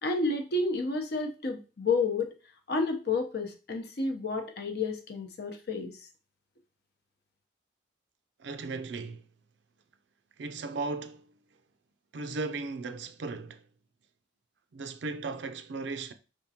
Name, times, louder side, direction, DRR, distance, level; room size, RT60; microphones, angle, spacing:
voice 1, 0.0-2.3 2.7-5.9, left 3 dB, 55° left, 0.7 m, -30 dB
voice 2, 8.4-9.2 10.4-11.3 12.1-13.6 14.7-16.1, right 3 dB, 65° right, 0.4 m, -36 dB
5.0 x 3.6 x 2.8 m
head